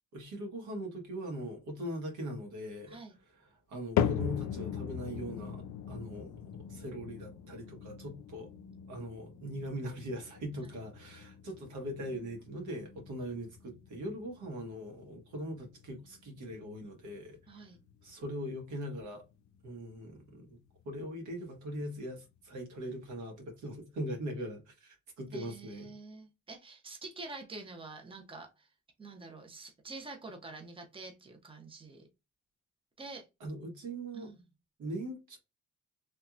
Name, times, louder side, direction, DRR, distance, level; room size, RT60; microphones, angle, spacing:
voice 1, 0.1-3.0 3.7-6.3 6.7-8.5 8.9-17.7 18.0-19.2 19.6-20.6 20.8-25.9 33.4-34.3 34.8-35.4, equal, 80° right, 1.4 m, -41 dB
sound 1, 4.0-20.3 20.6-21.1 21.7-21.8 22.6-22.7, left 9 dB, 75° left, 0.4 m, -40 dB
voice 2, 17.5-17.8 25.3-28.7 29.0-32.1 33.0-33.3 34.1-34.5, right 3 dB, 15° right, 0.9 m, -47 dB
3.3 x 2.9 x 2.5 m
cardioid pair, 90°, 30 cm